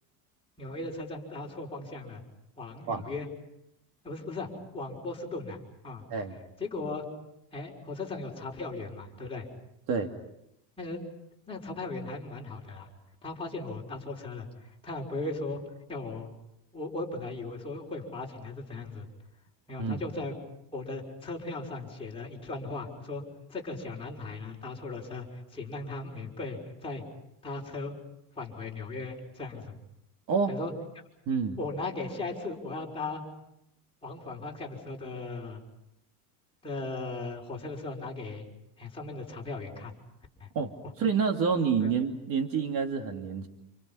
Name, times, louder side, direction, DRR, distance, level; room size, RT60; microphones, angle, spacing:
voice 1, 0.6-2.2 2.6-3.3 4.0-5.6 5.8-6.0 6.6-7.1 7.5-9.5 10.8-11.0 11.5-12.9 13.2-15.6 15.9-16.3 16.7-19.1 19.7-20.3 20.7-23.2 23.5-27.0 27.4-28.0 28.4-29.8 30.5-30.7 31.6-33.2 34.0-35.6 36.6-38.5 38.8-39.9 40.4-40.5 41.8-41.9, left 3 dB, 10° left, -2 dB, 5.8 m, -37 dB
voice 2, 31.3-31.6 40.5-40.7 41.0-43.5, right 5 dB, 45° right, 4 dB, 2.7 m, -28 dB
29.0 x 29.0 x 5.7 m, 0.81 s
supercardioid pair, 145°, 45 cm